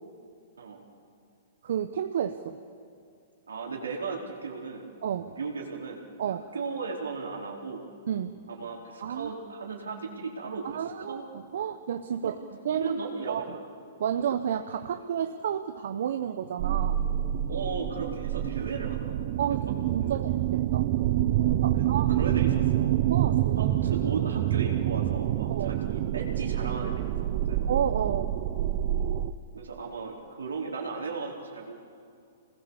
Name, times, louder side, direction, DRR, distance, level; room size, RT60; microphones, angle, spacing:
voice 1, 1.6-2.6 5.0-5.4 6.2-6.4 8.1-8.4 9.0-9.3 10.6-12.4 12.6-12.9 13.3-13.5 14.0-17.0 19.4-20.9 21.6-22.1 23.1-23.7 25.5-25.8 27.7-28.3, right 9 dB, 65° right, 8 dB, 1.0 m, -31 dB
voice 2, 3.5-4.9 5.4-6.0 6.3-7.8 8.5-11.3 12.2-12.4 12.7-13.6 17.5-19.3 19.6-19.7 20.0-20.2 21.8-23.0 23.6-27.6 29.5-31.7, right 4 dB, 85° right, -1 dB, 4.4 m, -36 dB
sound 1, 16.6-29.3, right 12 dB, 50° right, 1.0 m, -27 dB
27.0 x 20.5 x 7.2 m, 2.4 s
hypercardioid pair, 120°, 0 cm